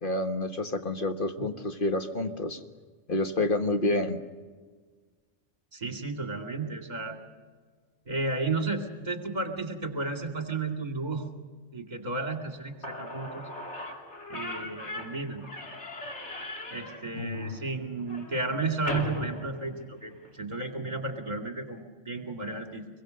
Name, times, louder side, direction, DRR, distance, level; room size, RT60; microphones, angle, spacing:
voice 1, 0.0-2.6 3.1-4.2 17.1-17.6, left 2 dB, 45° left, 6 dB, 1.4 m, -29 dB
voice 2, 5.7-7.2 8.1-11.3 11.7-13.4 14.3-15.4 16.7-22.9, right 3 dB, 35° right, 3 dB, 2.7 m, -33 dB
Slam / Squeak, 12.5-12.6 12.8-20.3, left 2 dB, 65° left, 3.1 m, -39 dB
25.5 x 22.0 x 6.5 m, 1.5 s
omnidirectional pair, 1.3 m